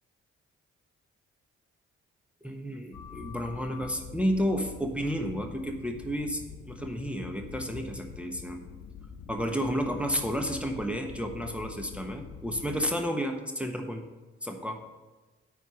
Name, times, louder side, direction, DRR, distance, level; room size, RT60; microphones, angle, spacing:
voice 1, 2.4-6.4 6.7-8.6 9.3-14.1 14.4-14.8, equal, 5° right, 3 dB, 1.2 m, -31 dB
sound 1, 2.9-13.0, left 7 dB, 65° left, 0.8 m, -45 dB
9.2 x 4.6 x 7.0 m, 1.2 s
hypercardioid pair, 45°, 33 cm